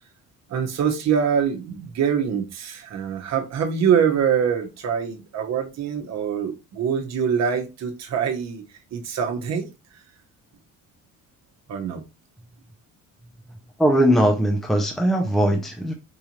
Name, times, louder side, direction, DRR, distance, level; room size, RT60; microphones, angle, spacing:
voice 1, 0.5-8.6 8.9-9.7 11.7-12.0, right 7 dB, 55° right, 1.1 m, -24 dB
voice 2, 13.8-15.9, equal, ahead, 0.6 m, -20 dB
4.9 x 2.6 x 3.0 m
cardioid pair, 135°, 32 cm